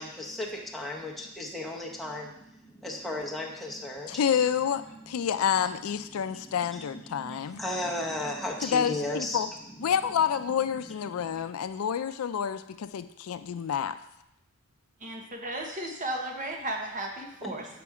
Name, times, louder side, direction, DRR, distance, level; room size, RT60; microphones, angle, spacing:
voice 1, 0.0-4.4 6.2-9.5 11.1-11.4 17.4-17.5, left 1 dB, ahead, -3 dB, 1.1 m, -35 dB
voice 2, 4.1-7.6 8.6-9.5 9.8-14.0, left 8 dB, 75° left, 12 dB, 0.4 m, -28 dB
voice 3, 15.0-17.7, right 1 dB, 35° right, 2 dB, 1.0 m, -35 dB
7.0 x 5.1 x 4.8 m, 0.82 s
head